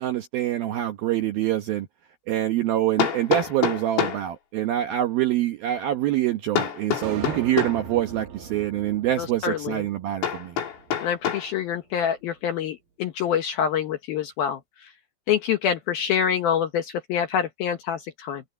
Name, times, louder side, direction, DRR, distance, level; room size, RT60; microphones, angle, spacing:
voice 1, 0.0-1.9 2.3-10.6, right 13 dB, 75° right, 2.2 m, -25 dB
Hammer, 1.4-1.5 3.0-4.3 6.6-7.9 10.2-11.5, left 8 dB, 85° left, 5.9 m, -27 dB
sound 1, 7.0-11.4, right 8 dB, 50° right, 3.4 m, -40 dB
voice 2, 9.2-9.8 11.0-14.6 15.3-18.4, left 8 dB, 70° left, 2.3 m, -26 dB
omnidirectional pair, 5.6 m